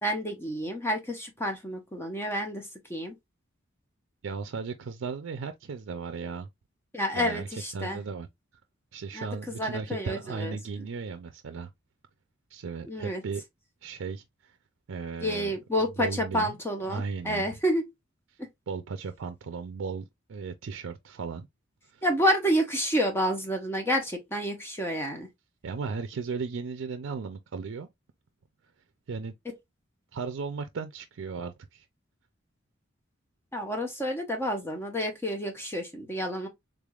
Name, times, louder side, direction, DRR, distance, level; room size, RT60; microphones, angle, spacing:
voice 1, 0.0-2.6 2.9-3.1 6.9-8.0 9.1-10.6 12.9-13.2 15.2-17.8 22.0-25.3 33.5-36.5, equal, 10° left, 0.8 m, -29 dB
voice 2, 4.2-6.5 7.1-8.3 8.9-11.7 12.5-13.4 13.8-14.5 14.9-15.5 16.0-16.6 16.9-17.5 18.7-21.5 21.9-22.0 25.6-27.9 29.1-29.3 30.1-31.8, right 5 dB, 80° right, 0.4 m, -36 dB
3.7 x 3.4 x 2.3 m
head